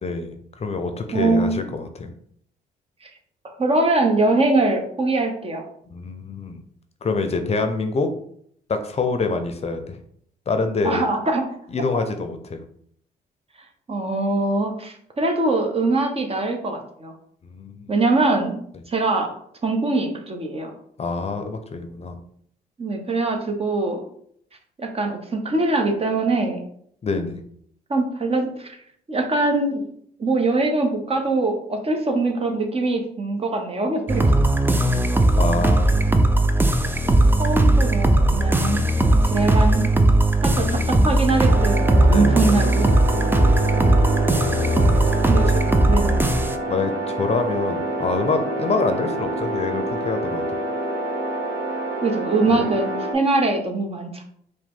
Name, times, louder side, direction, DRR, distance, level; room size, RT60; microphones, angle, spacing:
voice 1, 0.0-2.1 5.9-6.6 7.0-8.1 8.7-10.0 10.5-11.0 11.7-12.6 17.4-17.9 21.0-22.2 27.0-27.4 35.4-36.3 42.1-42.3 43.4-43.5 44.7-45.0 45.5-45.6 46.7-50.4 52.5-52.6, left 4 dB, 40° left, 7 dB, 0.6 m, -26 dB
voice 2, 1.1-1.6 3.6-5.6 10.8-11.4 11.9-12.0 13.9-17.1 17.9-18.5 18.9-19.3 19.6-20.7 22.8-24.0 24.8-26.6 27.9-28.8 29.1-29.8 30.2-34.3 37.4-38.8 39.2-39.9 40.4-42.9 45.3-45.5 45.9-46.3 52.0-54.2, right 2 dB, 35° right, 3 dB, 0.9 m, -22 dB
sound 1, 34.1-46.5, right 1 dB, 10° right, 0.4 m, -18 dB
sound 2, 41.5-53.1, right 1 dB, 70° right, 1.2 m, -27 dB
4.8 x 2.2 x 3.7 m, 0.66 s
supercardioid pair, 70°, 17 cm